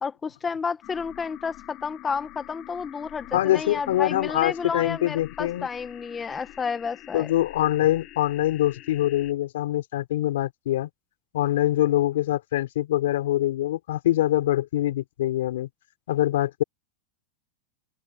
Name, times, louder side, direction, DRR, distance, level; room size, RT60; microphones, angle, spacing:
voice 1, 0.0-7.3, left 5 dB, 15° left, 1.2 m, -31 dB
sound 1, 0.8-9.3, left 17 dB, 40° left, 5.3 m, -46 dB
voice 2, 3.3-5.7 7.1-10.9 11.3-15.7 16.1-16.6, left 14 dB, 80° left, 4.5 m, -24 dB
open air
supercardioid pair, 150°, 0 cm